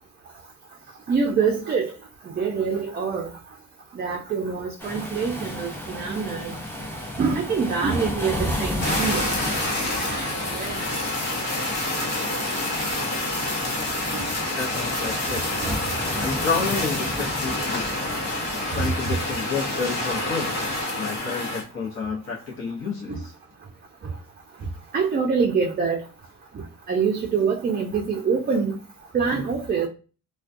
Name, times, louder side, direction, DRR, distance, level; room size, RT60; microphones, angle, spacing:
voice 1, 1.1-1.9 2.4-3.3 4.0-6.5 7.2-9.4 10.1-10.7 14.1-14.3 18.7-18.9 23.1-23.2 24.9-26.0 26.6-28.8 29.1-29.9, right 5 dB, 30° right, 0.5 m, -25 dB
sound 1, 4.8-20.8, left 1 dB, 5° left, 0.7 m, -33 dB
Fire, 8.8-21.6, left 2 dB, 60° left, 1.1 m, -28 dB
voice 2, 14.6-15.6 16.2-18.1 18.7-20.6 21.0-23.3, left 5 dB, 45° left, 0.8 m, -30 dB
2.3 x 2.2 x 2.5 m
cardioid pair, 90°, 30 cm